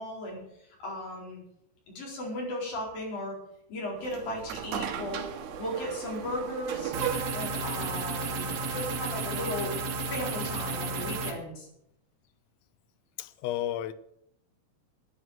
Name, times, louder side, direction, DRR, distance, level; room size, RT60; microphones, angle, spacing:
voice 1, 0.0-1.4 2.0-3.4 3.7-5.2 5.6-7.0 7.3-9.7 10.1-11.7, left 1 dB, 50° left, 6.0 m, -36 dB
sound 1, 4.0-9.3, right 8 dB, 90° right, 4.1 m, -37 dB
sound 2, 6.9-11.3, right 3 dB, 60° right, 3.0 m, -32 dB
voice 2, 13.2-13.9, left 12 dB, 80° left, 3.1 m, -32 dB
12.5 x 10.0 x 7.5 m
omnidirectional pair, 5.5 m